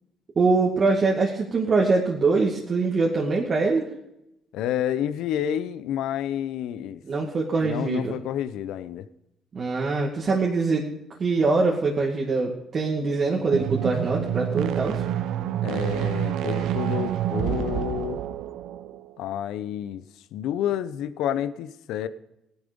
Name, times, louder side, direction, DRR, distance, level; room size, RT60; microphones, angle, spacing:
voice 1, 0.4-3.9 7.0-8.2 9.5-10.9 11.2-15.0, right 3 dB, 45° right, -2 dB, 2.1 m, -23 dB
voice 2, 4.5-7.0 7.6-9.1 15.6-18.2 19.2-20.0 20.3-22.1, left 10 dB, 80° left, 14 dB, 0.8 m, -29 dB
sound 1, 13.4-19.1, right 11 dB, 75° right, 0.7 m, -28 dB
15.5 x 11.0 x 5.2 m, 0.86 s
supercardioid pair, 70°, 0 cm